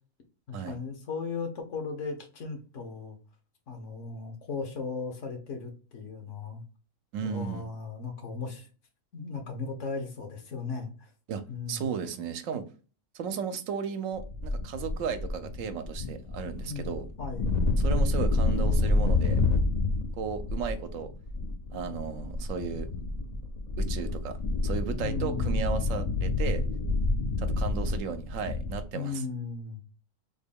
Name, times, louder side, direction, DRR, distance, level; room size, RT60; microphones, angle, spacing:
voice 1, 0.5-3.2 3.7-6.6 7.2-8.7 9.1-11.1 11.5-11.8 16.6-16.9 17.2-17.5 25.0-25.8 28.9-29.8, left 4 dB, 70° left, 1.3 m, -36 dB
voice 2, 7.1-7.7 11.3-12.7 13.1-17.1 17.8-19.4 20.2-21.1 21.7-22.9 23.8-24.4 24.6-26.6 27.4-29.2, right 6 dB, 80° right, 1.0 m, -35 dB
sound 1, 14.1-28.8, left 2 dB, 55° left, 0.5 m, -29 dB
3.8 x 2.2 x 3.5 m
omnidirectional pair, 1.4 m